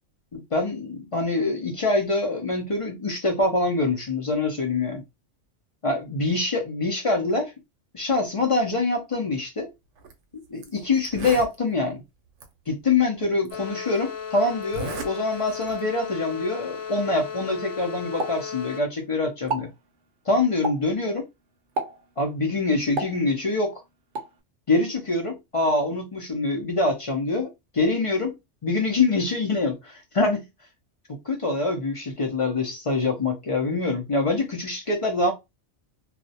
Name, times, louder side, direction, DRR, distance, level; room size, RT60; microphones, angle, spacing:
voice 1, 0.3-5.0 5.8-7.5 7.9-9.7 10.5-12.0 12.7-19.7 20.3-21.3 22.2-23.8 24.7-28.3 28.6-30.4 31.1-35.3, left 3 dB, 50° left, 0.4 m, -25 dB
Zipper (clothing), 10.0-10.1 10.6-10.7 11.0-11.5 12.4-12.5 13.4-13.5 14.6-15.1 15.5-15.8, right 4 dB, 85° right, 0.9 m, -35 dB
sound 1, 13.5-18.8, left 7 dB, 85° left, 0.9 m, -35 dB
Explosion, 18.2-19.1 19.4-19.8 20.6-21.0 21.8-22.1 23.0-23.7 24.2-24.4, right 2 dB, 60° right, 0.6 m, -31 dB
2.3 x 2.1 x 2.6 m
omnidirectional pair, 1.2 m